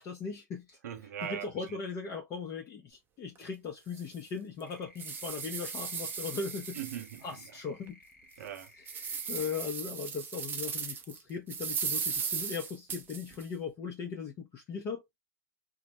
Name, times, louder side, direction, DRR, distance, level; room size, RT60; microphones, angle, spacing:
voice 1, 0.0-0.8 1.2-6.8 7.2-8.0 9.0-15.0, left 5 dB, 30° left, 0.6 m, -38 dB
voice 2, 0.8-1.8 6.7-7.2 8.4-8.7, right 10 dB, 70° right, 0.6 m, -40 dB
sound 1, 3.4-3.5 4.0-4.1 4.6-7.4 7.9-8.0 8.5-11.2 11.5-13.4, right 6 dB, 20° right, 0.5 m, -37 dB
sound 2, 4.6-9.7, left 1 dB, 80° left, 1.0 m, -59 dB
2.2 x 2.0 x 2.8 m
hypercardioid pair, 100°, 10 cm